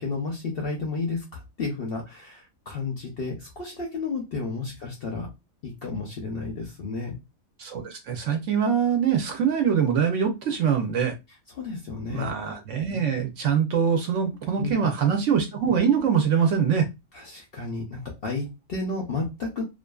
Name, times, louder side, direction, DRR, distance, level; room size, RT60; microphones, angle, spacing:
voice 1, 0.0-5.3 5.6-7.2 11.5-12.3 14.6-14.9 17.1-19.6, left 3 dB, 60° left, 0.6 m, -32 dB
voice 2, 7.6-11.1 12.1-16.9, right 7 dB, 65° right, 0.8 m, -23 dB
2.5 x 2.4 x 2.2 m
omnidirectional pair, 1.5 m